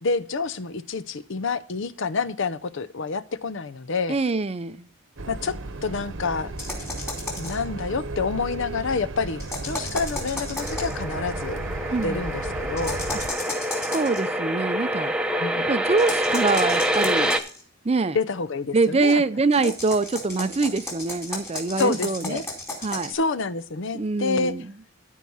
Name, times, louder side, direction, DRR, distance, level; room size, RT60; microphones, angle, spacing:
voice 1, 0.0-4.2 5.3-5.6 5.8-6.5 7.4-11.6 12.0-13.0 15.4-15.7 18.1-19.2 19.6-19.7 21.8-22.4 23.1-24.5, left 4 dB, 65° left, 0.6 m, -28 dB
voice 2, 4.1-4.9 11.9-12.2 13.7-15.1 15.6-17.3 17.8-18.2 18.7-22.5 22.8-23.1 23.9-24.7, right 3 dB, 30° right, 0.5 m, -24 dB
sound 1, 5.2-13.3, right 2 dB, 65° right, 1.0 m, -34 dB
sound 2, 6.6-7.7 9.4-11.0 12.8-14.2 16.0-17.6 19.5-23.1, left 2 dB, 15° left, 2.9 m, -34 dB
sound 3, 10.6-17.4, equal, 5° right, 0.8 m, -26 dB
14.0 x 4.7 x 5.5 m
head